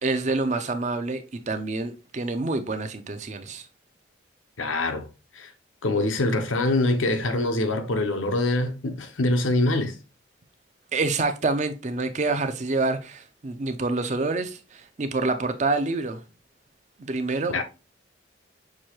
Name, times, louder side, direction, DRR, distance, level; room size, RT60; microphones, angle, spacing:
voice 1, 0.0-3.7 10.9-16.2 17.0-17.6, right 3 dB, 35° right, 0.5 m, -27 dB
voice 2, 4.6-5.1 5.3-5.5 5.8-10.0 17.5-17.6, left 2 dB, 85° left, 0.7 m, -24 dB
6.1 x 2.6 x 2.9 m
head